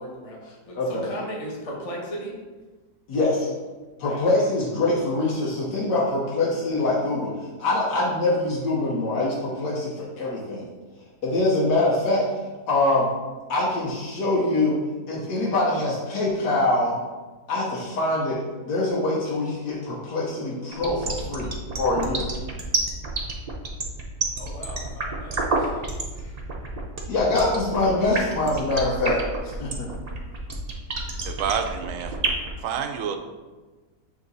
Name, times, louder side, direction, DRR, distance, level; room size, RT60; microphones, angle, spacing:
voice 1, 0.0-2.3 4.1-4.2 24.4-26.4, equal, 25° left, -2 dB, 0.9 m, -37 dB
voice 2, 3.1-3.5 4.0-7.3 7.6-10.6 11.2-12.2 12.7-13.1 13.5-14.8 15.1-17.0 17.5-18.4 18.7-21.5 21.8-22.3 27.1-29.9, left 2 dB, 85° left, -6 dB, 1.6 m, -24 dB
sound 1, 20.7-32.5, right 3 dB, 45° right, 0.5 m, -28 dB
voice 3, 31.2-32.1 32.6-33.2, right 7 dB, 65° right, 6 dB, 0.8 m, -28 dB
8.1 x 2.9 x 3.9 m, 1.3 s
omnidirectional pair, 1.7 m